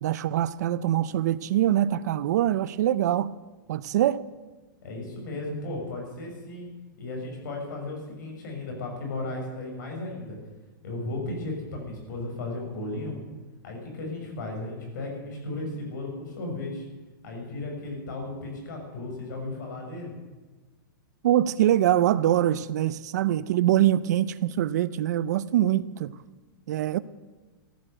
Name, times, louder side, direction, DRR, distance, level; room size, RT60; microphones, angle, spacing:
voice 1, 0.0-3.3 3.7-4.2 21.2-26.1 26.7-27.0, right 12 dB, 50° right, 0.5 m, -24 dB
voice 2, 4.8-6.7 7.0-10.4 10.8-13.2 13.6-16.9 17.2-20.1, left 2 dB, 55° left, 6.5 m, -35 dB
14.5 x 11.5 x 7.9 m
supercardioid pair, 170°, 12 cm